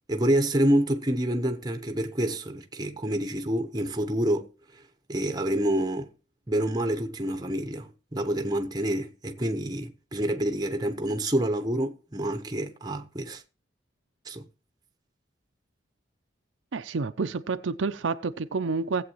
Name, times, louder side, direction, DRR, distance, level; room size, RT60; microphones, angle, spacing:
voice 1, 0.1-4.8 5.1-6.1 6.5-13.4 14.3-14.4, right 1 dB, 20° right, 1.0 m, -27 dB
voice 2, 16.7-19.0, right 4 dB, 75° right, 0.6 m, -29 dB
17.5 x 8.0 x 3.0 m
head